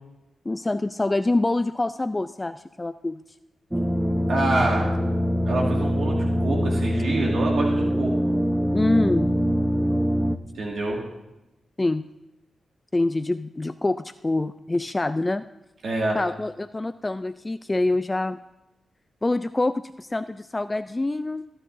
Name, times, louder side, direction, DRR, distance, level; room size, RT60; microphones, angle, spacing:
voice 1, 0.5-3.2 8.7-9.3 11.8-12.0 12.9-15.4 16.1-18.4 19.2-21.4, left 2 dB, 25° left, 11 dB, 0.4 m, -25 dB
sound 1, 3.7-10.4, equal, 10° right, 0.7 m, -23 dB
voice 2, 4.3-4.9 5.4-8.4 10.5-11.0 15.8-16.2, right 2 dB, 70° right, -2 dB, 2.1 m, -26 dB
23.0 x 10.0 x 2.7 m, 0.96 s
cardioid pair, 55°, 0 cm